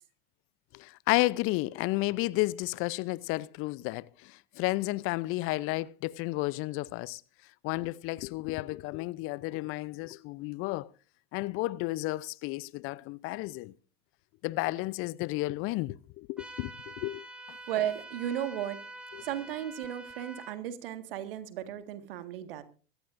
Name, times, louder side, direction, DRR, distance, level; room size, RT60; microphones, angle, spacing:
voice 1, 0.7-7.2 7.6-10.9 11.3-13.7 14.4-17.6 19.1-19.2, left 20 dB, 45° left, 0.6 m, -32 dB
sound 1, 16.4-20.6, right 1 dB, 5° right, 4.4 m, -46 dB
voice 2, 17.7-18.9 19.2-22.6, right 11 dB, 70° right, 1.8 m, -35 dB
23.5 x 14.0 x 2.6 m
figure-of-eight pair, 75°, 29 cm